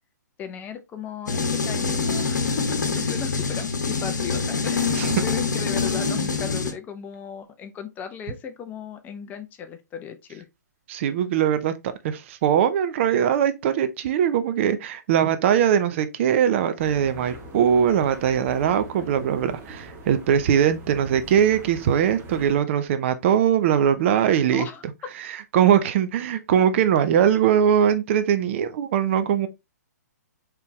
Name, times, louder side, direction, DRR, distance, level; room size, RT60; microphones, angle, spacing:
voice 1, 0.4-10.5 24.5-24.8, left 7 dB, 20° left, 0.6 m, -36 dB
sound 1, 1.3-6.7, left 4 dB, 75° left, 1.0 m, -25 dB
voice 2, 10.9-11.7 12.0-24.7 25.5-29.5, right 9 dB, 40° right, 0.6 m, -21 dB
sound 2, 16.8-22.6, right 1 dB, 20° right, 1.1 m, -41 dB
4.5 x 3.4 x 3.1 m
figure-of-eight pair, 125°, 10 cm